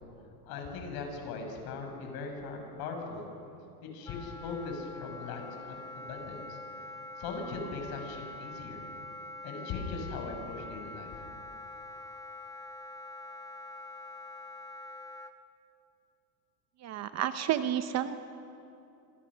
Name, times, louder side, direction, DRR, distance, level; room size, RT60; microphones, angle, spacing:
voice 1, 0.5-3.3 3.9-6.6 7.2-8.9 9.4-11.2, left 4 dB, 45° left, 3 dB, 6.3 m, -39 dB
Wind instrument woodwind instrument, 4.0-15.3, left 2 dB, 5° left, 0.8 m, -45 dB
voice 2, 16.8-18.2, right 11 dB, 30° right, 10 dB, 0.8 m, -30 dB
28.0 x 26.5 x 6.3 m, 2.7 s
supercardioid pair, 135°, 50 cm